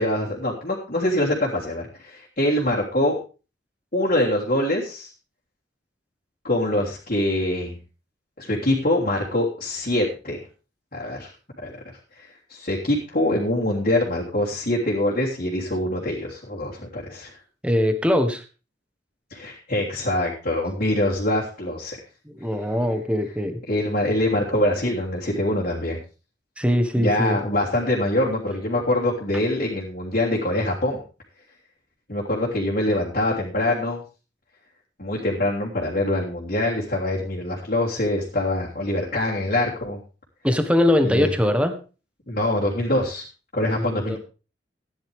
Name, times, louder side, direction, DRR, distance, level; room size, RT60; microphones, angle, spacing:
voice 1, 0.0-3.2 3.9-5.1 6.4-7.8 8.4-10.4 10.9-11.3 11.6-11.8 12.5-17.3 19.3-22.0 23.7-26.0 27.0-31.0 32.1-34.0 35.0-40.0 41.0-41.3 42.3-43.2 43.5-44.2, left 1 dB, 50° left, -5 dB, 3.1 m, -24 dB
voice 2, 17.6-18.4 22.2-23.6 26.6-27.4 40.4-41.8 43.7-44.2, left 1 dB, 5° right, 7 dB, 1.5 m, -21 dB
15.0 x 10.5 x 3.6 m, 0.33 s
head